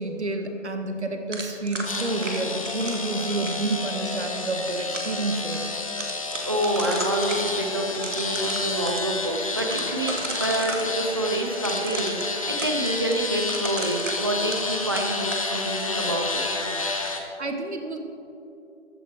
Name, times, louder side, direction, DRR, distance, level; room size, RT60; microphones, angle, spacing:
voice 1, 0.0-5.7 17.4-18.0, right 2 dB, 65° right, 5 dB, 1.4 m, -29 dB
sound 1, 1.3-3.7 4.4-5.2 5.5-5.6 5.9-7.5 7.9-9.0 9.6-10.9 11.6-14.7 15.0-15.4, right 2 dB, 80° right, 2.3 m, -34 dB
sound 2, 1.9-17.2, left 3 dB, 30° left, 0.8 m, -30 dB
voice 2, 6.4-16.4, right 1 dB, 20° right, 1 dB, 0.7 m, -27 dB
14.0 x 9.2 x 4.5 m, 2.6 s
figure-of-eight pair, 160°, 36 cm